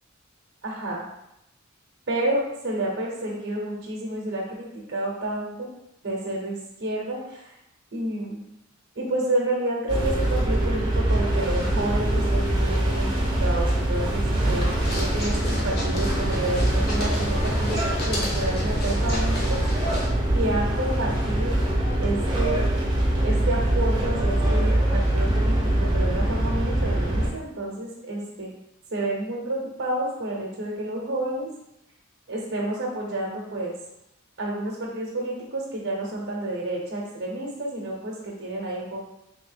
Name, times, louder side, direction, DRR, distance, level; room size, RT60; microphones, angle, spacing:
voice 1, 0.6-1.1 2.1-5.7 6.0-7.6 7.9-8.4 9.0-13.1 13.4-17.8 18.0-19.6 20.3-21.6 22.0-22.7 23.2-28.5 28.9-31.5 32.3-33.7 34.4-39.0, right 1 dB, 60° right, -3 dB, 0.8 m, -30 dB
sound 1, 9.9-27.3, right 1 dB, 25° right, 0.8 m, -23 dB
sound 2, 14.8-20.1, left 1 dB, 50° left, 1.0 m, -34 dB
3.4 x 3.1 x 3.4 m, 0.82 s
head